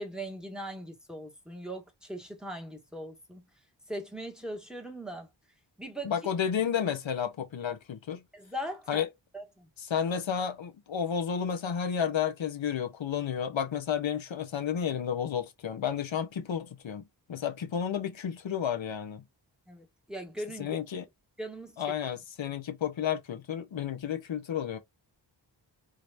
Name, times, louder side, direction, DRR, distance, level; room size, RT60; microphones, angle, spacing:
voice 1, 0.0-3.4 3.9-5.3 5.8-6.1 8.3-9.0 9.3-9.7 19.7-20.8 21.4-21.8, right 1 dB, ahead, 1.7 m, -40 dB
voice 2, 6.0-8.2 8.9-9.1 9.8-17.0 17.3-19.2 20.6-21.0 21.8-24.8, left 8 dB, 80° left, 1.0 m, -31 dB
5.0 x 2.9 x 2.5 m
wide cardioid pair, 70°, 45 cm